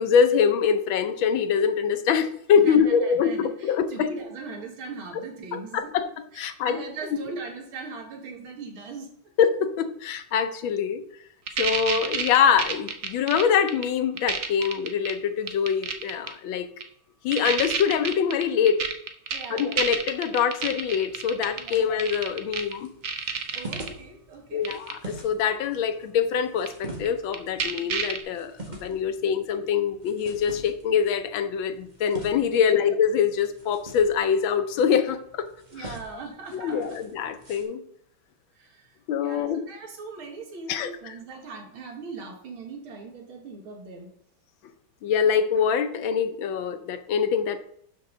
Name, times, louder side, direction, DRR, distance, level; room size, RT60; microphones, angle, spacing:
voice 1, 0.0-4.1 5.5-6.1 6.4-6.8 9.4-11.0 11.6-16.7 17.2-18.9 19.5-22.9 24.5-35.5 35.8-35.9 36.5-37.8 39.1-39.6 40.7-41.1 45.0-47.6, left 7 dB, 75° left, 10 dB, 1.5 m, -24 dB
voice 2, 2.5-5.9 6.3-9.1 19.3-19.7 21.6-21.9 23.5-24.7 32.5-32.8 35.7-37.0 38.5-44.1, right 4 dB, 80° right, 3 dB, 2.5 m, -40 dB
sound 1, 11.5-13.8 14.2-15.1 15.5-16.3 16.8-16.9 17.3-22.7 23.0-23.9 24.6-24.9 26.7-26.8 27.1-27.2 27.3-28.2, right 6 dB, 55° right, 0.8 m, -28 dB
sound 2, 20.8-37.6, right 1 dB, 25° right, 1.6 m, -45 dB
12.0 x 5.4 x 3.8 m, 0.68 s
omnidirectional pair, 2.2 m